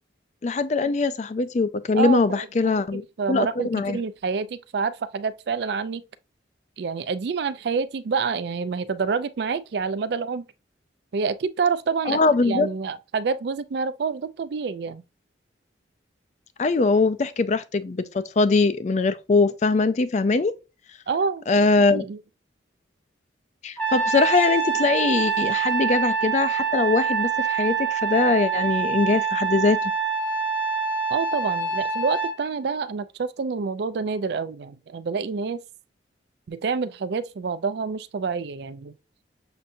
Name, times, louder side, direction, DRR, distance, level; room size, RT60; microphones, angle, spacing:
voice 1, 0.4-3.0 3.3-4.0 12.1-12.7 16.6-20.5 21.5-22.1 23.6-29.8, left 3 dB, 40° left, 0.4 m, -22 dB
voice 2, 1.9-6.0 6.8-10.5 11.1-12.2 12.4-15.0 21.1-21.5 21.8-22.2 31.1-35.6 36.5-38.9, right 5 dB, 60° right, 0.4 m, -28 dB
Trumpet, 23.8-32.3, right 6 dB, 10° left, 0.8 m, -25 dB
6.7 x 2.6 x 2.5 m
head